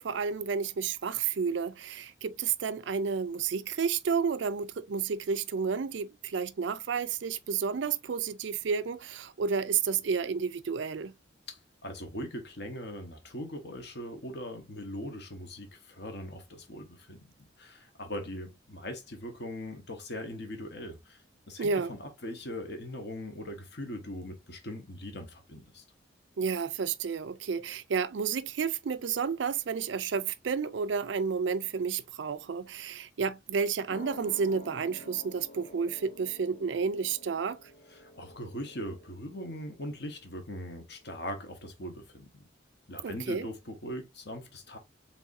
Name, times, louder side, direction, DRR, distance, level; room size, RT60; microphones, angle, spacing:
voice 1, 0.0-11.1 21.6-21.9 26.4-37.6 43.0-43.5, right 6 dB, 70° right, 0.4 m, -31 dB
voice 2, 11.5-25.8 37.9-42.4 42.9-44.8, left 1 dB, 60° left, 1.3 m, -40 dB
sound 1, 33.9-41.0 41.3-41.4, left 1 dB, 40° left, 0.9 m, -51 dB
4.7 x 3.6 x 2.6 m
head